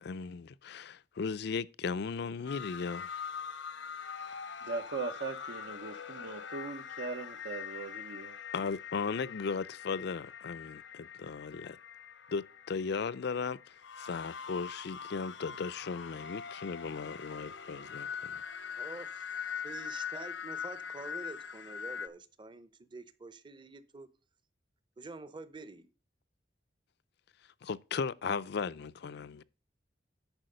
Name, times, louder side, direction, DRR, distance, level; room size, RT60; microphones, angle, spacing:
voice 1, 0.0-3.1 8.5-11.8 12.3-18.4 27.6-29.4, left 5 dB, 65° left, 0.4 m, -36 dB
sound 1, 2.5-22.1, left 7 dB, 85° left, 0.8 m, -43 dB
voice 2, 4.6-8.4, right 4 dB, 70° right, 0.8 m, -39 dB
voice 3, 18.8-24.1 25.0-25.9, right 3 dB, 25° right, 0.7 m, -47 dB
10.5 x 4.7 x 6.6 m
head